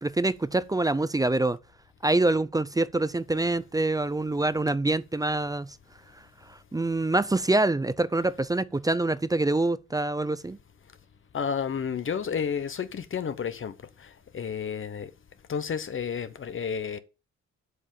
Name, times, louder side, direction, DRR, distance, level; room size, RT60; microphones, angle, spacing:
voice 1, 0.0-1.6 2.0-5.8 6.5-10.6, right 2 dB, 10° right, 0.5 m, -25 dB
voice 2, 11.3-15.1 15.5-17.0, left 7 dB, 40° left, 0.9 m, -31 dB
8.0 x 5.4 x 7.6 m
cardioid pair, 110°, 30 cm